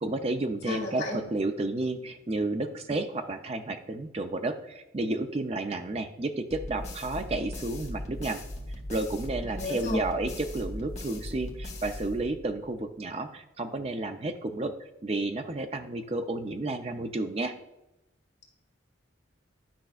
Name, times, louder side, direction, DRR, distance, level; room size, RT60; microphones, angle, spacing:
voice 1, 0.0-8.4 8.9-14.7 15.0-17.5, right 2 dB, 30° right, 7 dB, 0.4 m, -31 dB
voice 2, 0.6-1.2 9.4-10.1, left 1 dB, 55° left, -1 dB, 1.9 m, -31 dB
sound 1, 6.5-12.6, left 1 dB, 35° left, 1.0 m, -39 dB
10.0 x 5.3 x 2.4 m, 0.90 s
head